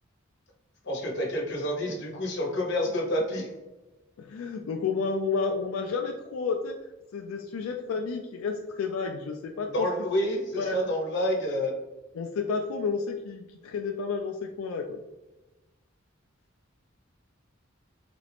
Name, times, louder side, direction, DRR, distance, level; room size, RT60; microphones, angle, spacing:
voice 1, 0.8-3.5 9.6-11.7, equal, 55° left, -1 dB, 1.0 m, -28 dB
voice 2, 4.2-6.7 7.1-9.9 10.6-10.8 12.1-15.0, left 5 dB, 90° left, 3 dB, 0.3 m, -31 dB
3.8 x 2.4 x 3.3 m, 1.1 s
head